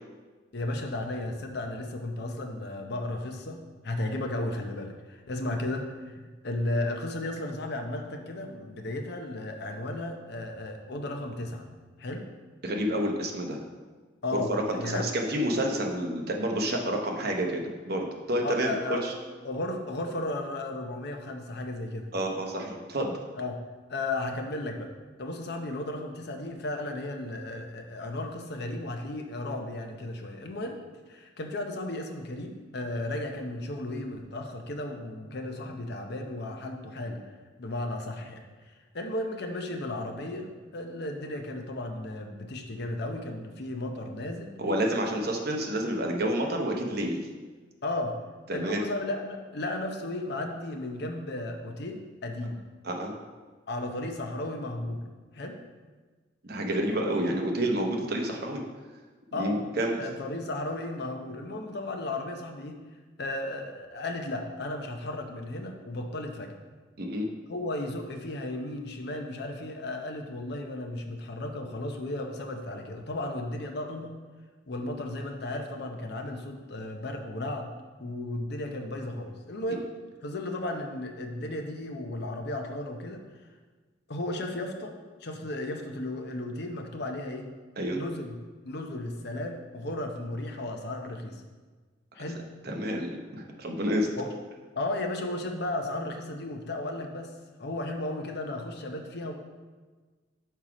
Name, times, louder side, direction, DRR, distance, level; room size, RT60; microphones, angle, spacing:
voice 1, 0.5-3.6 3.8-11.7 12.0-12.2 14.2-15.0 18.4-19.0 19.4-22.1 23.4-23.6 23.9-24.9 25.2-30.8 31.1-37.2 37.6-38.4 38.9-44.5 47.8-48.2 48.5-52.6 53.7-55.0 55.3-55.6 56.9-57.1 59.3-59.6 60.0-62.8 63.2-66.5 67.5-74.2 74.7-77.7 78.0-79.9 80.2-83.2 84.1-84.9 85.2-87.5 87.9-88.4 88.6-91.4 92.1-92.4 94.2-94.4 94.8-97.3 97.6-99.3, left 1 dB, 60° left, 3 dB, 0.7 m, -34 dB
voice 2, 12.6-13.7 14.3-19.1 22.1-23.2 44.6-47.2 48.5-48.8 52.8-53.1 56.5-58.6 59.4-60.0 67.0-67.3 87.8-88.0 92.6-94.1, right 1 dB, 55° right, 1 dB, 0.9 m, -29 dB
5.6 x 4.6 x 4.9 m, 1.4 s
head